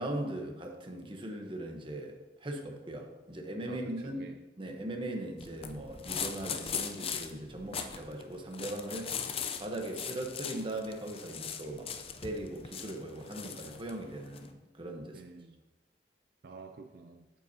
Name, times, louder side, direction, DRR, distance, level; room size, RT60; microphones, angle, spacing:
voice 1, 0.0-4.3 4.6-9.1 9.6-11.9 12.2-15.2, right 1 dB, 30° right, 3 dB, 1.0 m, -39 dB
voice 2, 3.7-4.4 4.8-4.9 15.1-15.6 16.4-17.3, right 3 dB, 60° right, 5 dB, 0.4 m, -49 dB
sound 1, 5.4-14.5, left 7 dB, 35° left, 0.5 m, -40 dB
8.9 x 8.0 x 2.8 m, 1.1 s
head